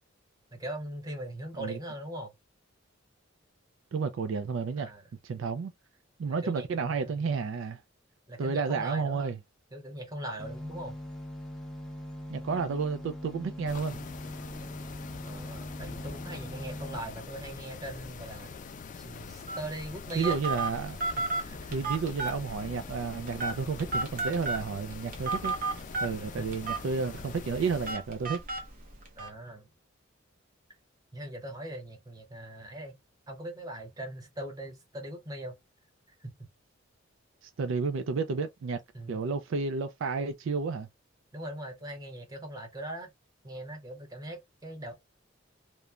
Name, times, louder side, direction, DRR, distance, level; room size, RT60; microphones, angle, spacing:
voice 1, 0.5-2.3 4.8-5.0 6.3-7.4 8.3-9.3 9.7-11.0 15.2-18.6 19.0-20.4 21.4-21.9 26.4-26.6 29.2-29.7 31.1-32.9 33.3-35.6 36.2-36.5 38.9-39.2 41.3-43.1 43.4-44.9, right 1 dB, 20° right, 0.9 m, -40 dB
voice 2, 3.9-4.9 5.2-5.7 6.2-7.8 8.4-9.4 12.3-14.1 20.2-21.0 21.7-28.4 37.4-38.8 39.1-40.9, right 5 dB, 70° right, 0.4 m, -31 dB
sound 1, 10.4-17.0, left 1 dB, 5° left, 0.6 m, -41 dB
sound 2, 13.7-27.9, left 5 dB, 40° left, 0.4 m, -44 dB
Telephone, 19.5-29.3, right 3 dB, 45° right, 0.9 m, -35 dB
3.0 x 2.1 x 2.3 m
head